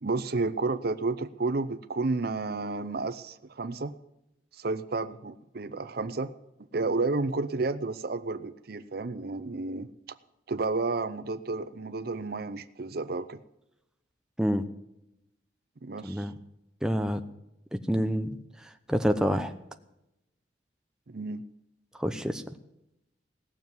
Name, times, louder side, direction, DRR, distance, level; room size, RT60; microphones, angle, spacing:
voice 1, 0.0-3.9 4.5-6.3 6.7-9.9 10.5-13.4 15.8-16.3 21.1-21.4, right 3 dB, 55° right, 13 dB, 0.6 m, -31 dB
voice 2, 16.0-16.3 16.8-17.2 17.7-19.5 22.0-22.4, equal, 5° right, 6 dB, 0.8 m, -28 dB
17.5 x 7.2 x 9.4 m, 0.87 s
head